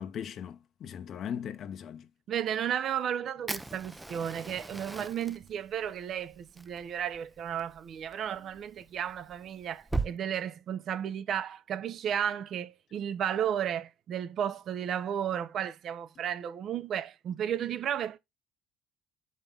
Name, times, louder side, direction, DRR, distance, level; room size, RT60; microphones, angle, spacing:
voice 1, 0.0-2.1, left 8 dB, 55° left, 0.9 m, -38 dB
voice 2, 2.3-18.2, right 9 dB, 55° right, 0.7 m, -33 dB
Fire, 3.5-10.1, right 2 dB, 10° right, 0.5 m, -40 dB
6.7 x 5.2 x 3.9 m
cardioid pair, 95°, 0 cm